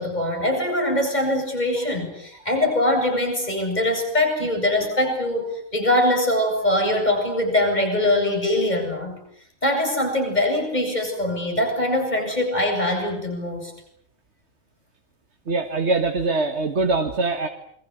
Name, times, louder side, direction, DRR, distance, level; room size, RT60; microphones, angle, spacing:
voice 1, 0.0-9.2 9.6-13.7, left 1 dB, 30° left, 3 dB, 8.1 m, -22 dB
voice 2, 15.5-17.5, right 3 dB, 55° right, 6 dB, 2.0 m, -23 dB
28.0 x 23.0 x 8.1 m, 0.69 s
omnidirectional pair, 1.4 m